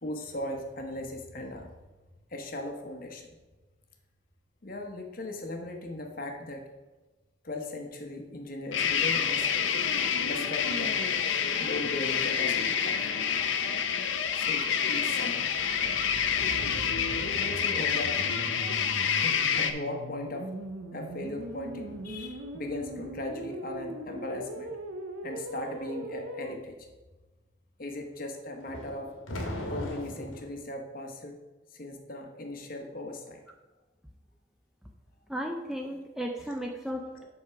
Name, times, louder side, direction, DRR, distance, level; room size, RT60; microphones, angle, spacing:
voice 1, 0.0-1.7 2.3-3.3 4.6-6.6 7.4-9.5 10.2-11.0 11.6-13.2 14.3-15.5 17.2-18.2 19.0-20.5 20.9-24.7 25.2-26.7 27.8-29.1 29.7-31.4 31.7-33.4, left 2 dB, 45° left, 3 dB, 0.9 m, -38 dB
sound 1, 8.7-19.7, left 7 dB, 70° left, 0.6 m, -28 dB
sound 2, 15.3-26.6, right 2 dB, 85° right, 0.6 m, -40 dB
sound 3, 28.7-30.5, left 1 dB, 90° left, 1.4 m, -37 dB
voice 2, 35.3-37.2, equal, ahead, 2 dB, 0.4 m, -35 dB
7.7 x 3.6 x 5.7 m, 1.2 s
head